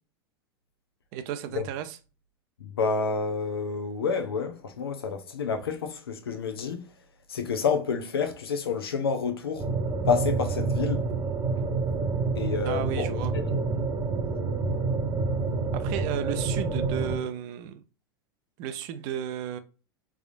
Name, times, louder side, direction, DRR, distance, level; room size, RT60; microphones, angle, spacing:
voice 1, 1.1-2.0 12.6-13.3 15.7-17.8 18.6-19.6, right 10 dB, 55° right, 0.6 m, -33 dB
voice 2, 2.6-6.9 7.3-9.7 10.1-11.1 12.4-13.7, left 5 dB, 85° left, 0.7 m, -29 dB
sound 1, 9.6-17.2, right 4 dB, 25° right, 0.8 m, -28 dB
3.5 x 3.4 x 2.5 m
hypercardioid pair, 90°, 12 cm